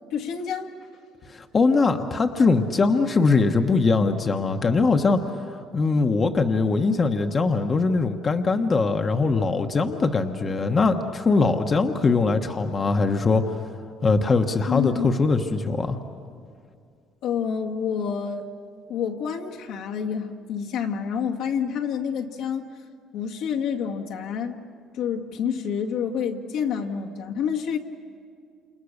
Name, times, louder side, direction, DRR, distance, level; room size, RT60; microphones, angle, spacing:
voice 1, 0.1-0.7 14.7-15.1 17.2-18.4 18.9-22.7 23.1-24.6 24.9-27.8, left 7 dB, 75° left, 0 dB, 2.0 m, -28 dB
voice 2, 1.3-5.2 5.7-13.4 14.0-16.0, left 4 dB, 30° left, 5 dB, 1.2 m, -21 dB
29.0 x 28.0 x 6.7 m, 2.3 s
cardioid pair, 105°, 0 cm